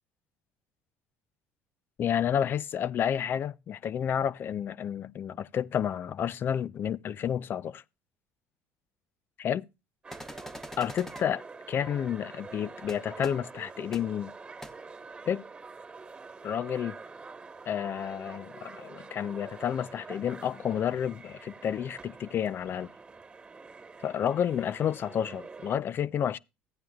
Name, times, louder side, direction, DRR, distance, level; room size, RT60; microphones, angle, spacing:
voice 1, 2.0-7.8 9.4-9.6 10.8-11.4 11.7-14.3 15.3-15.4 16.4-17.0 17.7-22.9 24.0-26.4, left 9 dB, 45° left, 0.5 m, -30 dB
sound 1, 10.0-25.8, right 4 dB, 20° right, 1.5 m, -46 dB
sound 2, 10.1-11.2 12.9-13.0 13.2-13.3 13.9-14.0 14.6-14.7, left 1 dB, 5° left, 1.0 m, -43 dB
14.5 x 9.0 x 2.4 m
supercardioid pair, 100°, 5 cm